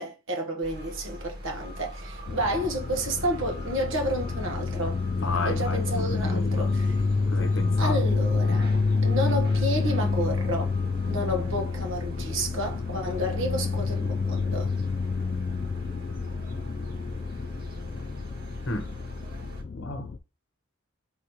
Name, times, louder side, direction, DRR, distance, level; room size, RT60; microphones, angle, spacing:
voice 1, 0.0-5.0 5.4-6.9 7.8-8.7 9.0-10.7 11.1-14.7, equal, 60° right, 1.1 m, -30 dB
sound 1, 0.6-19.6, equal, 45° right, 1.8 m, -41 dB
sound 2, 2.3-20.2, left 4 dB, 35° left, 0.3 m, -28 dB
voice 2, 5.1-6.7 7.3-8.0 8.5-8.7 18.6-18.9 19.8-20.1, left 2 dB, 55° left, 0.9 m, -33 dB
3.7 x 2.9 x 4.7 m
head